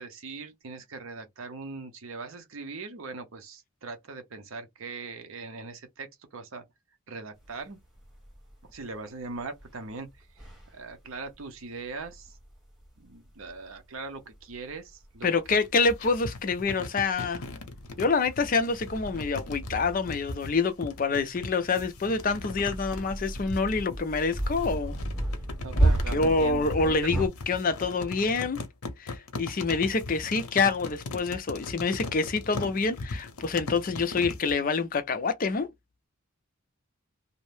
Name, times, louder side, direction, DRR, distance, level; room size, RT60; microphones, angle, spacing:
voice 1, 0.0-6.7 7.1-7.8 8.6-12.4 13.0-15.3 25.6-27.2, right 3 dB, 65° right, 0.6 m, -41 dB
sound 1, 7.4-8.9 9.2-27.3, right 1 dB, ahead, 1.0 m, -34 dB
voice 2, 15.2-17.4 18.0-24.9 25.7-28.6 29.0-35.7, left 4 dB, 40° left, 0.4 m, -27 dB
sound 2, 15.4-34.6, left 3 dB, 80° left, 0.7 m, -39 dB
2.6 x 2.0 x 3.1 m
head